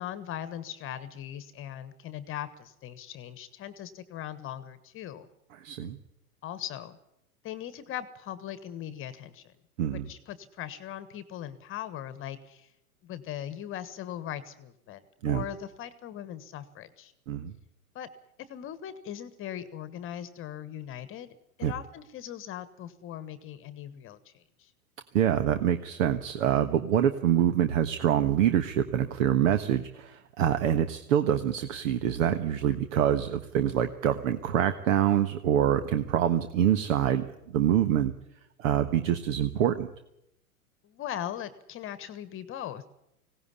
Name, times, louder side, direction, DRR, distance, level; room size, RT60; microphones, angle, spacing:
voice 1, 0.0-5.3 6.4-7.0 7.4-9.5 9.9-12.7 13.0-17.1 17.9-18.1 18.5-24.7 40.8-42.8, left 11 dB, 25° left, 14 dB, 1.3 m, -40 dB
voice 2, 5.6-6.0 9.8-10.1 15.2-15.4 17.3-17.5 21.6-21.7 25.1-37.3 37.5-38.1 38.6-39.9, right 10 dB, 55° right, 10 dB, 1.4 m, -25 dB
19.5 x 17.5 x 9.9 m, 0.82 s
hypercardioid pair, 115°, 45 cm